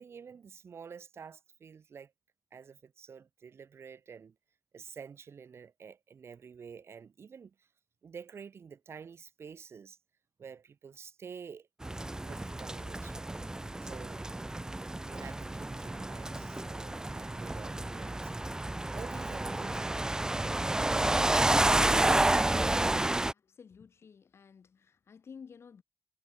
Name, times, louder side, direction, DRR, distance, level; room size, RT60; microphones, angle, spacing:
voice 1, 0.0-2.1 2.5-4.4 4.7-7.7 8.0-10.0 10.4-11.7 12.2-13.3 13.8-14.2 15.0-18.3 18.9-20.1, right 6 dB, 75° right, 1.0 m, -49 dB
sound 1, 11.8-23.3, right 2 dB, 15° right, 0.4 m, -30 dB
voice 2, 23.3-25.8, left 6 dB, 75° left, 2.5 m, -52 dB
wide cardioid pair, 100°, 4 cm